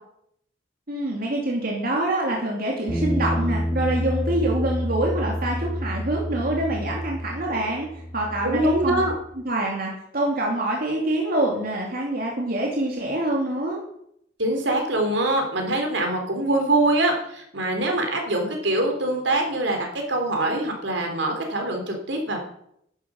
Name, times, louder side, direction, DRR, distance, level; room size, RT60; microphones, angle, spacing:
voice 1, 0.9-7.9 8.1-9.0 9.4-13.8, right 1 dB, 55° right, -1 dB, 2.6 m, -25 dB
sound 1, 2.9-9.1, equal, 10° left, 4.8 m, -28 dB
voice 2, 8.4-9.1 14.4-22.4, right 1 dB, 70° right, 3 dB, 3.5 m, -24 dB
12.0 x 11.0 x 6.4 m, 0.74 s
head